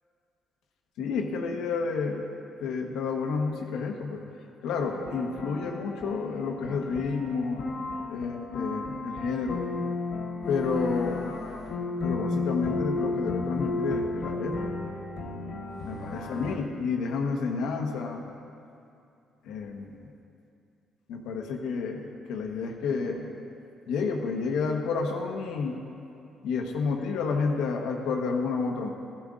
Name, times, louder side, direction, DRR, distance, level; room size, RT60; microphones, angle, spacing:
voice 1, 1.0-2.3 2.6-4.2 4.6-9.6 10.5-11.4 12.0-14.7 15.8-18.3 19.4-20.1 21.1-23.4 23.9-25.7 26.4-28.9, left 4 dB, 90° left, 2 dB, 1.1 m, -30 dB
sound 1, 4.8-16.5, left 3 dB, 70° left, 1.3 m, -33 dB
14.0 x 12.0 x 3.7 m, 2.6 s
cardioid pair, 90°, 0 cm